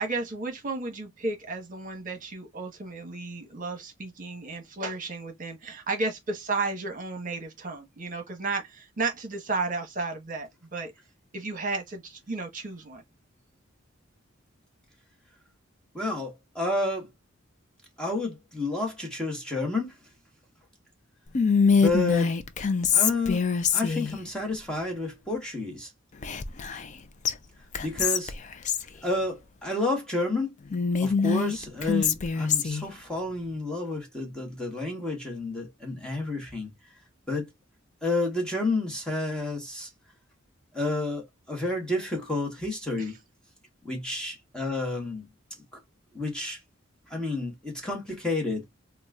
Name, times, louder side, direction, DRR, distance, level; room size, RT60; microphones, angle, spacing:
voice 1, 0.0-10.9 11.3-13.0 43.0-43.1, right 3 dB, 45° right, 1.1 m, -33 dB
voice 2, 15.9-17.1 18.0-19.9 21.7-22.3 22.9-23.4 23.7-25.9 27.8-28.3 29.0-30.5 31.0-36.7 37.3-37.4 38.0-39.9 40.7-43.2 43.8-45.2 46.1-46.6 47.1-48.6, left 2 dB, 5° left, 1.2 m, -30 dB
Whispering, 21.3-24.2 26.2-27.0 27.2-27.3 27.7-28.9 30.7-32.8, left 5 dB, 40° left, 0.4 m, -24 dB
4.1 x 2.3 x 2.4 m
head